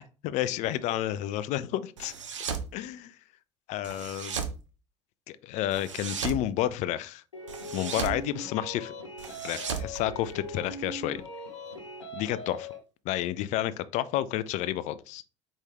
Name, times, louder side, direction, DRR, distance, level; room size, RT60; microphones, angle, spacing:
voice 1, 0.2-2.1 2.7-3.1 3.7-4.4 5.3-7.2 7.7-8.9 9.4-11.2 12.1-12.7 13.1-15.2, left 13 dB, 50° left, 0.4 m, -30 dB
sound 1, 2.0-2.7 3.8-4.6 5.7-6.4 7.5-8.2 9.2-10.7, right 6 dB, 80° right, 0.5 m, -35 dB
sound 2, 7.3-12.8, equal, 85° left, 0.7 m, -41 dB
4.8 x 2.6 x 3.5 m
figure-of-eight pair, 65°, 16 cm